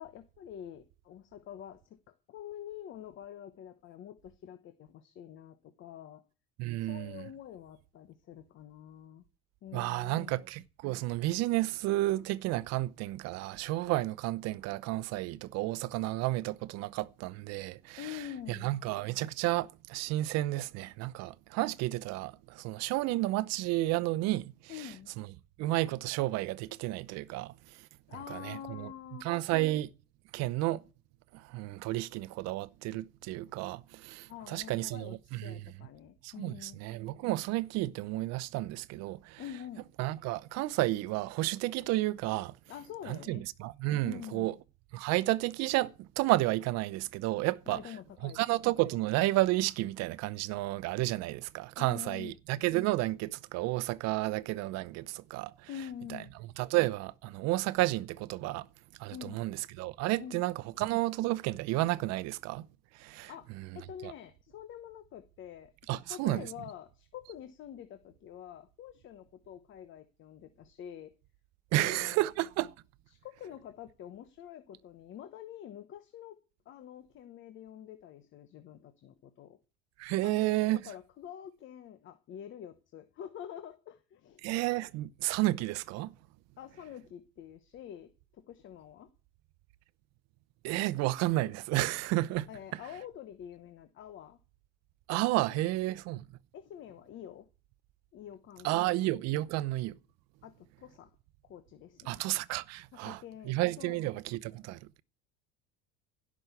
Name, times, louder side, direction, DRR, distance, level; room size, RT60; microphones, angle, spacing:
voice 1, 0.0-6.2 6.8-9.2 9.6-10.4 18.0-18.7 24.7-25.1 28.1-29.3 34.3-36.8 39.4-39.8 42.7-43.4 44.0-44.6 47.7-48.6 51.8-52.3 55.7-56.3 59.1-59.4 60.2-60.4 63.3-63.5 63.7-71.1 71.7-72.3 73.1-76.4 76.6-79.6 80.2-80.6 80.8-84.4 86.6-89.1 92.5-94.4 95.5-95.7 96.5-97.5 98.1-99.0 100.4-101.2 101.4-102.2 102.9-104.0, left 10 dB, 40° left, 1.1 m, -47 dB
voice 2, 6.6-7.3 9.7-18.2 18.5-24.9 25.2-25.3 25.6-27.5 28.3-28.9 29.2-29.9 30.3-30.8 31.3-35.6 36.2-39.4 40.0-42.6 43.1-44.5 44.9-47.8 48.2-55.5 56.6-58.7 59.0-62.7 62.9-63.3 64.0-64.1 65.9-66.5 71.7-72.7 80.0-80.8 84.4-86.1 90.6-92.5 95.1-96.3 98.6-100.0 102.1-103.2 103.4-105.0, right 17 dB, 55° right, 0.8 m, -31 dB
16.5 x 6.3 x 8.1 m
cardioid pair, 150°, 32 cm